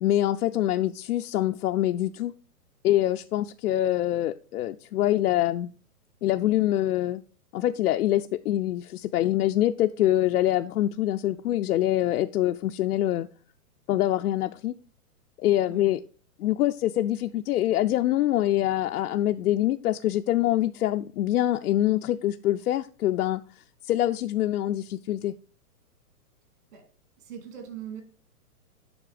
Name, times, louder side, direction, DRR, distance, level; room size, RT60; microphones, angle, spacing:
voice 1, 0.0-2.3 2.8-5.7 6.2-7.2 7.5-13.3 13.9-14.7 15.4-16.0 16.4-25.3, left 13 dB, 75° left, 7 dB, 0.5 m, -25 dB
voice 2, 27.2-28.0, right 8 dB, 55° right, 5 dB, 2.5 m, -40 dB
7.9 x 5.4 x 4.9 m, 0.40 s
hypercardioid pair, 160°, 45 cm